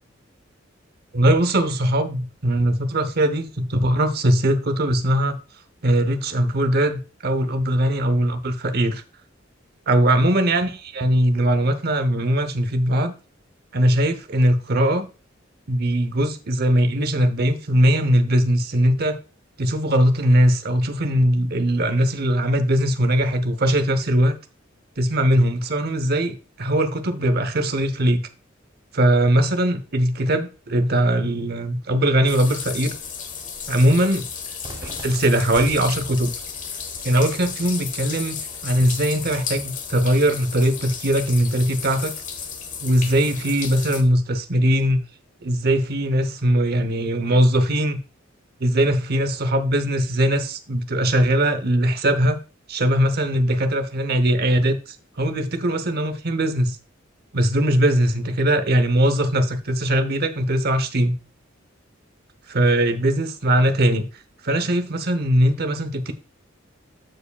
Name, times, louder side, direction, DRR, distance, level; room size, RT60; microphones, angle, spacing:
voice 1, 1.1-5.4 5.8-9.0 9.9-10.7 10.9-13.1 13.7-15.1 15.7-19.2 19.6-24.4 25.0-28.2 28.9-32.9 33.7-34.3 34.8-36.3 37.0-42.1 42.8-45.0 45.4-48.0 48.6-52.4 52.7-56.8 57.3-61.2 62.5-64.1 64.4-66.1, right 1 dB, 55° right, 0.9 m, -20 dB
sound 1, 32.3-44.0, left 6 dB, 40° left, 1.2 m, -33 dB
Cheering / Fireworks, 34.6-40.6, right 1 dB, 25° right, 2.9 m, -44 dB
14.0 x 4.8 x 2.3 m
head